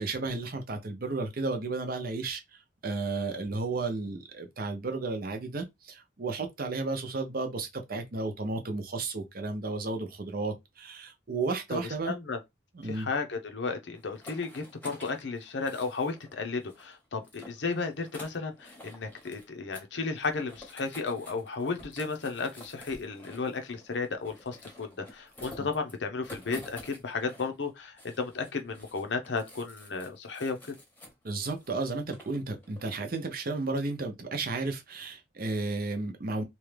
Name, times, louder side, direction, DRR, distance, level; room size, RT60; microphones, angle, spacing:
voice 1, 0.0-12.1 12.7-13.1 25.6-25.7 31.2-36.4, right 3 dB, 50° right, 0.7 m, -33 dB
voice 2, 12.1-12.4 12.8-30.6, left 4 dB, 70° left, 0.7 m, -34 dB
sound 1, 14.0-16.3 16.6-19.5 19.7-19.9 20.2-27.7 28.0-31.7 32.1-33.0, left 1 dB, 10° left, 0.9 m, -50 dB
3.0 x 2.3 x 3.3 m
head